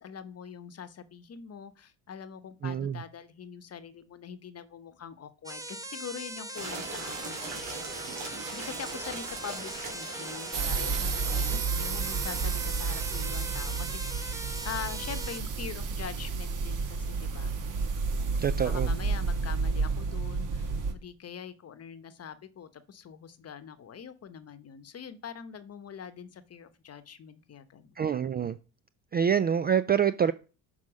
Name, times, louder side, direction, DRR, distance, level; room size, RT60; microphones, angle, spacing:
voice 1, 0.0-7.8 8.3-14.3 14.6-17.5 18.6-27.9, left 7 dB, 35° left, 1.0 m, -43 dB
voice 2, 2.6-3.0 18.4-18.9 28.0-28.6 29.1-30.3, right 8 dB, 25° right, 0.4 m, -26 dB
sound 1, 5.5-15.4, right 1 dB, 10° right, 0.9 m, -41 dB
sound 2, 6.5-11.6, right 4 dB, 80° right, 2.4 m, -40 dB
sound 3, 10.5-20.9, right 4 dB, 50° right, 1.3 m, -31 dB
6.2 x 4.1 x 6.2 m
hypercardioid pair, 65°, 41 cm